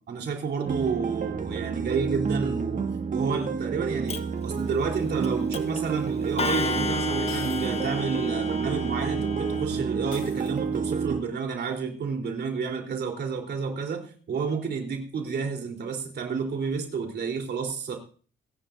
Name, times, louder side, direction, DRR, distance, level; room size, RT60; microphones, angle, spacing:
voice 1, 0.0-18.0, right 5 dB, 60° right, 2 dB, 3.8 m, -30 dB
sound 1, 0.6-11.2, right 5 dB, 40° right, 1.7 m, -29 dB
Clock, 4.1-4.2 5.2-5.3 5.5-5.8 6.4-9.6, left 4 dB, 30° left, 1.2 m, -32 dB
sound 2, 5.8-5.9 7.3-8.0 8.3-8.4 10.1-11.0, left 8 dB, 80° left, 2.4 m, -45 dB
25.0 x 11.0 x 2.7 m, 0.40 s
cardioid pair, 90°, 20 cm